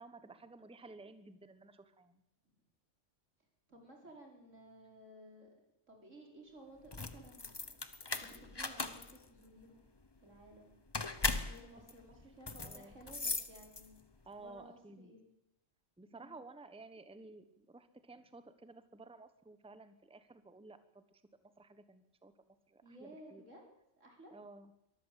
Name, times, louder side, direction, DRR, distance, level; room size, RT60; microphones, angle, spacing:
voice 1, 0.0-2.2 11.8-11.9 12.6-12.9 14.2-15.1 16.0-21.2 21.6-22.3 22.7-23.4 24.3-24.7, right 3 dB, 5° right, 11 dB, 1.1 m, -54 dB
voice 2, 3.7-5.5 5.9-7.8 8.1-9.8 10.2-10.8 11.5-14.0 14.4-15.3 16.1-16.4 22.8-23.6 24.0-24.3, right 1 dB, 85° right, 1 dB, 5.2 m, -56 dB
sound 1, 6.8-14.1, left 3 dB, 20° left, 1.0 m, -39 dB
23.0 x 14.0 x 8.4 m, 0.82 s
omnidirectional pair, 1.3 m